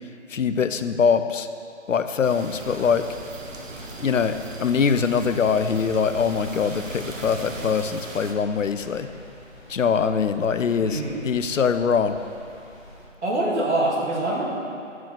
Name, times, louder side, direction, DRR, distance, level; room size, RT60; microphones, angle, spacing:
voice 1, 0.3-1.5 1.9-3.1 4.0-4.3 4.6-9.1 9.7-12.2, left 6 dB, 75° left, 10 dB, 0.6 m, -23 dB
sound 1, 2.2-8.3, right 3 dB, 85° right, 1.2 m, -38 dB
sound 2, 2.6-13.1, left 1 dB, 15° left, 0.9 m, -47 dB
voice 2, 10.8-11.2 13.2-14.4, right 2 dB, 60° right, -4 dB, 2.0 m, -24 dB
9.3 x 4.7 x 5.9 m, 2.5 s
figure-of-eight pair, 175°, 38 cm